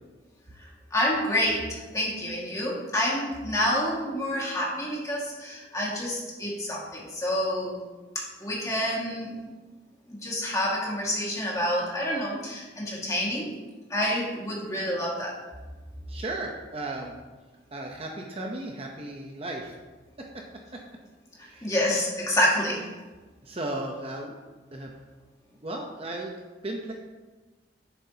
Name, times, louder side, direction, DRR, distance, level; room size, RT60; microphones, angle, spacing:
voice 1, 0.9-7.8 8.1-9.4 10.1-13.5 13.9-15.4 21.4-22.9, left 1 dB, 15° left, -4 dB, 1.9 m, -28 dB
voice 2, 16.1-17.1 17.7-19.8 20.2-20.4 20.7-20.8 21.4-21.7 23.4-24.4 24.7-24.9 25.6-26.3 26.6-26.9, right 2 dB, 30° right, 1 dB, 0.8 m, -35 dB
11.0 x 7.4 x 2.8 m, 1.2 s
head